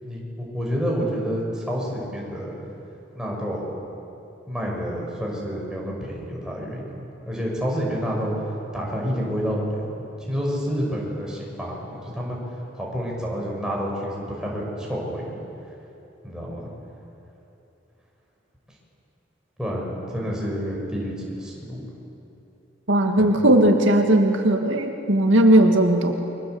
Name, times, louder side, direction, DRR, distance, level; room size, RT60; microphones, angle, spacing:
voice 1, 0.0-2.6 3.1-3.7 4.5-8.3 8.7-9.9 10.3-12.4 12.7-15.2 16.2-16.7 19.6-21.8 23.2-23.4, equal, 5° right, -3 dB, 6.0 m, -29 dB
voice 2, 22.9-26.2, right 1 dB, 75° right, 3 dB, 2.2 m, -17 dB
30.0 x 24.0 x 8.0 m, 2.9 s
head